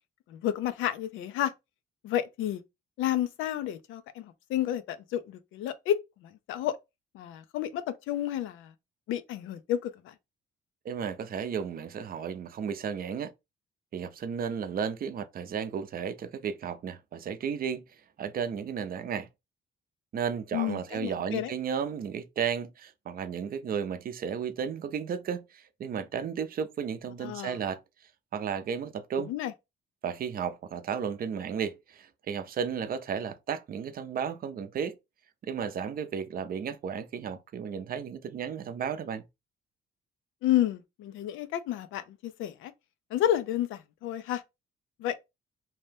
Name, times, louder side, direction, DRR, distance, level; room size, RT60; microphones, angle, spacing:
voice 1, 0.3-1.5 2.0-2.6 3.0-6.8 7.1-8.7 9.1-10.1 20.5-21.5 27.2-27.6 29.2-29.5 40.4-42.7 43.1-44.4 45.0-45.2, left 12 dB, 90° left, 0.4 m, -31 dB
voice 2, 10.8-13.3 13.9-17.8 18.2-19.3 20.1-27.8 28.3-29.3 30.0-35.0 35.4-39.2, right 7 dB, 45° right, 0.5 m, -33 dB
2.7 x 2.1 x 3.3 m
cardioid pair, 90°, 20 cm